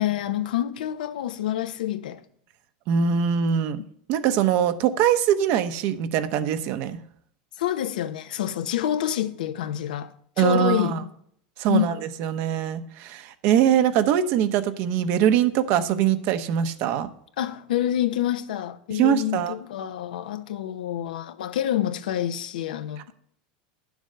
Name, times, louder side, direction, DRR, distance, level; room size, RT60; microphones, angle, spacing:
voice 1, 0.0-2.2 7.6-11.1 11.7-11.9 17.4-23.1, left 11 dB, 85° left, 1.0 m, -27 dB
voice 2, 2.9-3.8 4.1-7.0 10.4-11.0 11.6-17.1 18.9-19.6, right 9 dB, 55° right, 1.0 m, -22 dB
10.5 x 7.2 x 6.6 m
supercardioid pair, 125°, 4 cm